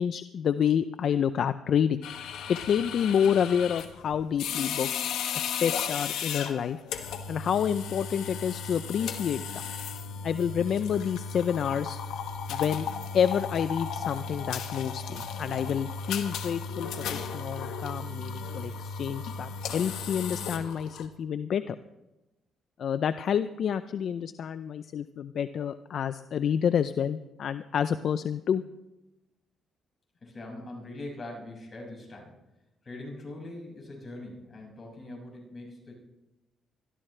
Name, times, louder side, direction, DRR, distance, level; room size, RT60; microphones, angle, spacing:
voice 1, 0.0-2.1 2.5-6.8 7.3-9.4 10.2-12.0 12.5-12.9 13.1-21.8 22.8-28.6, left 8 dB, 60° left, 12 dB, 0.5 m, -28 dB
sound 1, 2.0-21.1, left 6 dB, 85° left, 1.5 m, -35 dB
voice 2, 30.2-32.3 32.8-35.9, left 2 dB, 35° left, -1 dB, 6.4 m, -42 dB
22.0 x 14.0 x 3.3 m, 0.98 s
cardioid pair, 90°, 0 cm